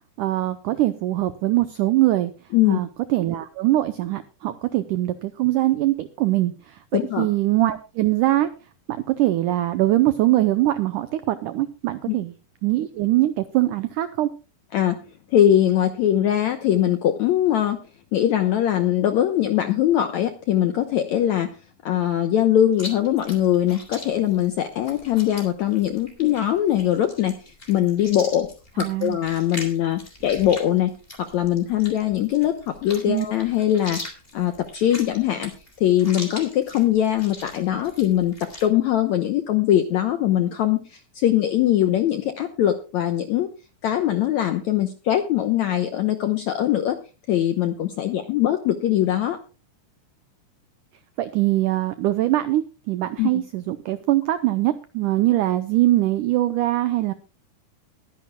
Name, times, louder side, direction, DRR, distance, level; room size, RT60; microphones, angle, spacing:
voice 1, 0.2-2.3 2.7-8.5 8.9-12.3 12.6-14.3 28.8-29.2 33.1-33.3 51.2-57.1, right 15 dB, 85° right, 12 dB, 1.8 m, -22 dB
voice 2, 6.9-7.3 12.1-12.2 14.7-15.0 15.3-17.8 18.1-21.5 21.8-27.3 27.7-28.5 28.7-30.9 31.3-34.0 34.3-35.5 35.8-38.3 38.6-43.5 43.8-47.0 47.3-49.4 53.2-53.4, left 11 dB, 75° left, 7 dB, 1.7 m, -21 dB
Chewing mastication, 22.7-38.7, left 2 dB, 15° left, 3.3 m, -40 dB
22.0 x 10.5 x 2.3 m, 0.32 s
omnidirectional pair, 4.5 m